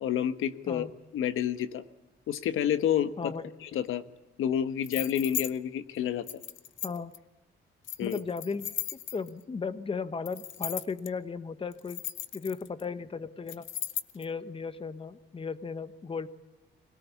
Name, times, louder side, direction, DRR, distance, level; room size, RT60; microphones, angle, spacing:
voice 1, 0.0-1.8 2.3-3.3 3.6-4.0 4.4-6.3 8.0-8.2, left 9 dB, 85° left, 11 dB, 1.3 m, -29 dB
sound 1, 4.8-5.5 6.3-7.2 7.8-9.4 10.3-11.1 11.7-12.8 13.5-14.3, left 11 dB, 70° left, 1.0 m, -36 dB
voice 2, 8.0-12.0 12.3-13.7 14.1-16.3, left 5 dB, 25° left, 12 dB, 1.1 m, -36 dB
25.0 x 18.0 x 8.3 m, 1.0 s
cardioid pair, 120°, 21 cm